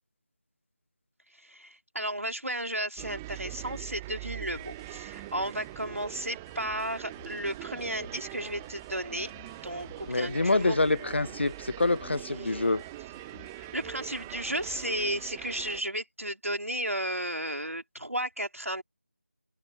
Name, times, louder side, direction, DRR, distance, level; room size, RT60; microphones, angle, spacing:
voice 1, 1.4-9.3 9.6-10.8 13.6-18.8, right 1 dB, 85° right, 3.7 m, -34 dB
sound 1, 3.0-15.8, right 19 dB, 10° right, 0.8 m, -43 dB
sound 2, 4.5-15.1, left 8 dB, 20° left, 6.4 m, -55 dB
voice 2, 10.1-12.8, left 2 dB, 55° left, 0.8 m, -26 dB
open air
figure-of-eight pair, 165°, 7 cm